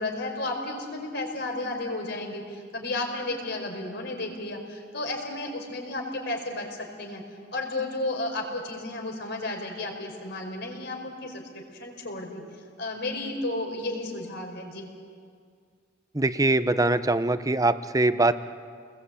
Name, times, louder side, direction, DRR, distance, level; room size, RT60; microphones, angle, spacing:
voice 1, 0.0-7.2 7.5-12.4 12.8-14.9, left 2 dB, 65° left, 3 dB, 4.8 m, -33 dB
voice 2, 16.1-18.3, right 2 dB, 20° right, 12 dB, 0.8 m, -22 dB
29.5 x 20.5 x 8.3 m, 2.1 s
head